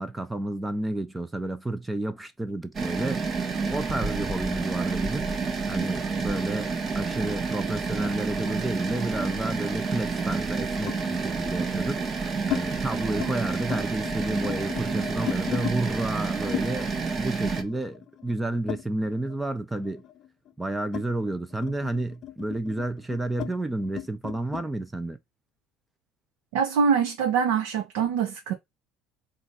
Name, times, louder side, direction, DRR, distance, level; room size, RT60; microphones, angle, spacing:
voice 1, 0.0-3.2 3.7-5.3 5.7-12.0 12.5-20.0 20.6-25.2, right 2 dB, 10° right, 0.5 m, -31 dB
sound 1, 2.7-17.6, right 4 dB, 35° right, 1.0 m, -29 dB
sound 2, 8.2-9.6 10.9-11.1 11.8-12.6 13.0-13.3 13.6-15.8 16.5-19.4 19.7-24.7, left 11 dB, 50° left, 0.5 m, -37 dB
voice 2, 26.5-28.5, right 6 dB, 85° right, 0.8 m, -24 dB
4.0 x 2.5 x 3.9 m
supercardioid pair, 100°, 0 cm